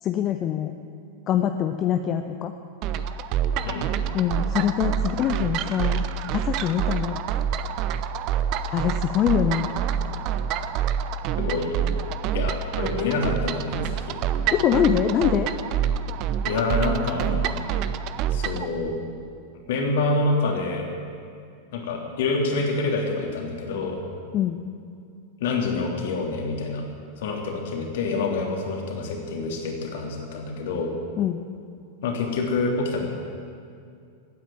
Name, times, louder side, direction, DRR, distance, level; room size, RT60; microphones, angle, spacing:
voice 1, 0.0-0.7 1.3-2.5 4.1-6.0 6.3-7.2 8.7-9.7 14.5-15.5 24.3-24.6 31.2-31.4, left 10 dB, 30° left, 7 dB, 0.7 m, -24 dB
sound 1, 2.8-18.7, right 8 dB, 40° right, 0.7 m, -27 dB
voice 2, 11.4-11.7 12.3-14.1 16.4-17.5 18.3-19.0 19.5-20.9 21.7-24.0 25.4-26.9 27.2-30.9 32.0-33.1, left 3 dB, 55° left, 0 dB, 3.1 m, -27 dB
15.5 x 9.5 x 9.4 m, 2.3 s
figure-of-eight pair, 90°, 0 cm